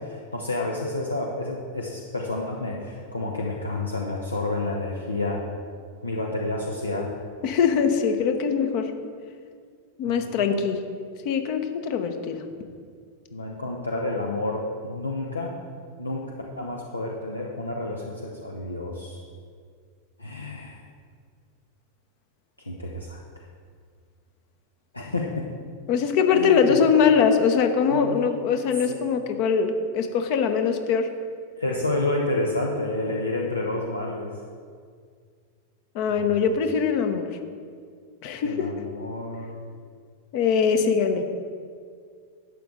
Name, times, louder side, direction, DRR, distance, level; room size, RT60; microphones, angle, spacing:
voice 1, 0.0-5.4 6.0-7.1 10.2-10.4 13.3-15.5 16.0-19.2 20.2-20.8 22.6-23.2 24.9-25.5 26.3-26.8 27.9-28.3 28.9-29.0 31.6-34.4 36.1-36.6 38.4-39.5, left 2 dB, 80° left, -1 dB, 0.8 m, -30 dB
voice 2, 7.4-8.9 10.0-10.8 11.2-12.4 25.9-31.1 35.9-37.4 38.2-38.7 40.3-41.2, left 6 dB, 45° left, 7 dB, 0.9 m, -22 dB
11.5 x 8.0 x 3.8 m, 2.1 s
figure-of-eight pair, 90°, 0 cm